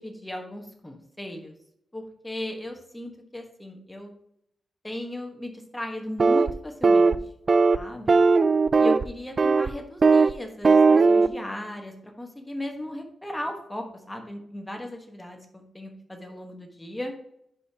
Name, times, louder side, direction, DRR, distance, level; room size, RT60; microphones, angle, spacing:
voice 1, 0.0-1.5 1.9-4.1 4.8-7.2 7.7-8.2 8.8-17.1, left 1 dB, 10° left, 3 dB, 1.2 m, -36 dB
sound 1, 6.2-6.5 6.8-7.2 7.5-7.8 8.1-9.0 9.4-9.7 10.0-10.3 10.6-11.3, right 4 dB, 35° right, 0.3 m, -18 dB
10.5 x 5.1 x 2.8 m, 0.74 s
wide cardioid pair, 130°, 0 cm